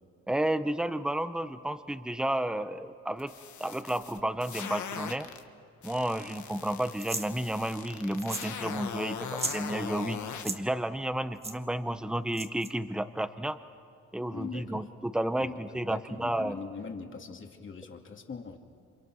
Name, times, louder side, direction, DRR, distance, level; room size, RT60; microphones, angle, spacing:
voice 1, 0.3-3.3 3.6-5.3 5.8-13.6 14.1-16.5, right 1 dB, 5° right, 11 dB, 1.0 m, -32 dB
sound 1, 3.2-5.4 5.8-10.5, left 8 dB, 75° left, 1.8 m, -40 dB
sound 2, 7.0-7.3 8.2-8.6 8.8-8.9 9.2-9.6 10.3-10.6 11.4-11.6 12.3-12.7, right 3 dB, 20° right, 1.5 m, -35 dB
voice 2, 14.3-14.9 15.4-18.6, left 5 dB, 40° left, 3 dB, 2.8 m, -42 dB
28.5 x 26.5 x 6.4 m, 2.3 s
cardioid pair, 90°, 30 cm